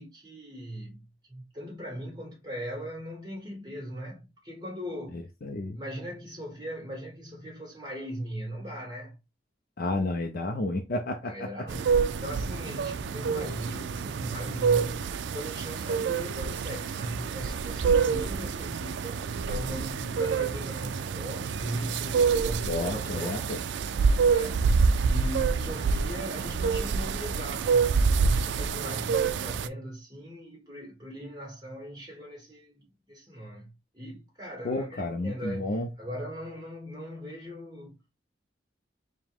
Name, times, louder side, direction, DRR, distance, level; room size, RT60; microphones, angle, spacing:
voice 1, 0.0-5.2 5.7-9.2 11.2-23.5 24.3-38.0, equal, 25° right, 2.5 m, -39 dB
voice 2, 5.4-5.8 9.8-11.5 22.7-23.6 34.6-35.9, left 2 dB, 55° left, 0.5 m, -31 dB
sound 1, 11.7-29.7, right 5 dB, 90° right, 0.4 m, -27 dB
4.8 x 2.2 x 3.5 m
head